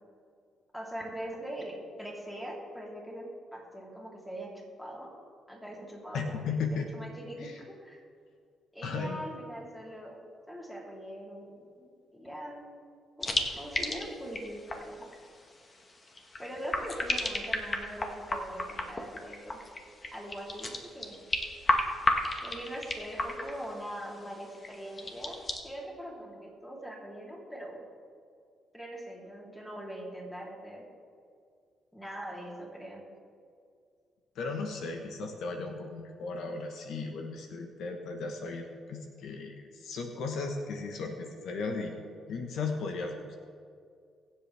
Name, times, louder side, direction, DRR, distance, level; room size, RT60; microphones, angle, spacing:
voice 1, 0.7-4.5 4.8-5.1 5.5-8.0 8.7-10.2 10.5-12.8 13.2-15.0 16.4-19.6 20.1-21.2 22.4-27.8 28.7-30.8 31.9-33.0, equal, 5° left, -3 dB, 3.3 m, -42 dB
voice 2, 6.1-6.9 7.4-7.6 8.8-9.2 34.3-41.9 42.3-43.4, left 4 dB, 75° left, 4 dB, 1.2 m, -36 dB
sound 1, 13.2-25.6, left 2 dB, 30° left, 1.5 m, -34 dB
23.0 x 7.8 x 3.5 m, 2.2 s
cardioid pair, 90°, 0 cm